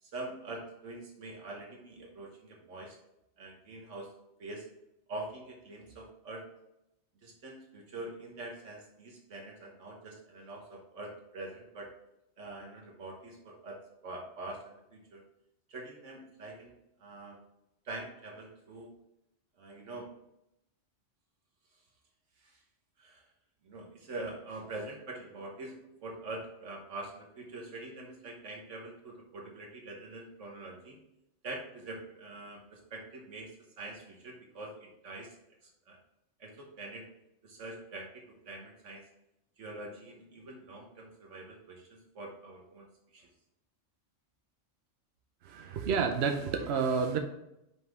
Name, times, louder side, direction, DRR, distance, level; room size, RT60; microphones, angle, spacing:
voice 1, 0.0-3.0 3.4-4.1 4.4-4.7 5.1-6.5 7.2-12.0 12.4-15.2 15.7-16.7 17.0-17.4 17.8-18.9 19.6-20.1 22.4-22.6 23.0-23.2 23.6-31.0 31.4-35.3 35.9-36.0 36.4-37.1 37.4-39.0 39.6-42.9 43.1-43.3 45.5-45.8, right 2 dB, 80° right, 0 dB, 1.4 m, -44 dB
voice 2, 45.4-47.2, right 5 dB, 65° right, 5 dB, 0.9 m, -30 dB
5.7 x 5.6 x 3.5 m, 0.86 s
omnidirectional pair, 1.2 m